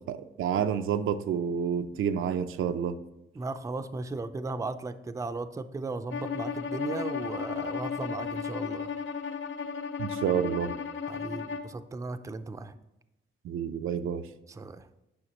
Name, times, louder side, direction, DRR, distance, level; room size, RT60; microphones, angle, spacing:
voice 1, 0.1-3.0 10.0-10.7 13.4-14.3, right 8 dB, 85° right, 9 dB, 0.5 m, -29 dB
voice 2, 3.3-8.9 11.0-12.7 14.5-14.9, right 3 dB, 15° right, 10 dB, 0.4 m, -36 dB
Bowed string instrument, 6.1-11.7, left 6 dB, 75° left, 0.5 m, -34 dB
9.5 x 5.7 x 2.9 m, 0.90 s
cardioid pair, 110°, 21 cm